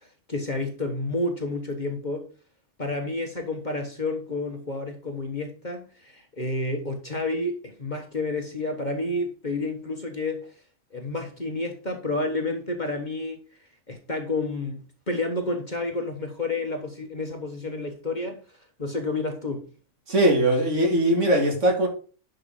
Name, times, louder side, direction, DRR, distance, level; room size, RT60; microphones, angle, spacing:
voice 1, 0.3-2.3 2.8-10.5 10.9-13.4 13.9-18.4 18.8-19.7, left 2 dB, 35° left, 1.3 m, -30 dB
voice 2, 20.1-21.9, right 1 dB, 55° right, 2.5 m, -20 dB
11.0 x 5.2 x 3.8 m
omnidirectional pair, 1.5 m